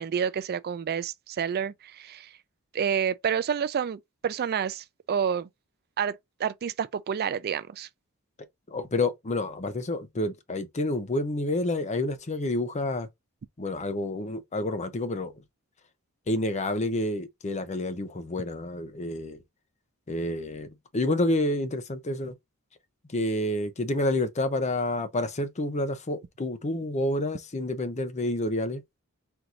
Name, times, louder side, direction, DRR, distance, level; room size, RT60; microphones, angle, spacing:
voice 1, 0.0-2.3 2.7-5.5 6.0-7.9, right 7 dB, 45° right, 0.4 m, -29 dB
voice 2, 8.7-13.1 13.6-15.3 16.3-19.4 20.1-22.3 23.1-28.8, left 1 dB, 30° left, 0.7 m, -29 dB
4.5 x 2.6 x 3.8 m
head